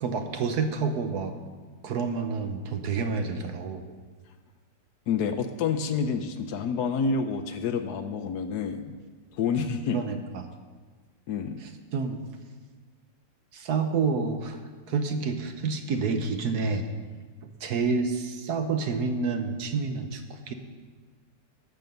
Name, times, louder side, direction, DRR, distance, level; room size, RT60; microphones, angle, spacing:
voice 1, 0.0-1.4 1.8-3.9 9.9-10.5 11.6-12.2 13.5-14.6 14.9-16.9 17.6-20.5, right 4 dB, 65° right, 6 dB, 1.3 m, -29 dB
voice 2, 5.1-9.0 9.4-10.0 11.3-11.6, left 5 dB, 70° left, 8 dB, 1.1 m, -28 dB
12.5 x 7.6 x 5.3 m, 1.5 s
omnidirectional pair, 2.0 m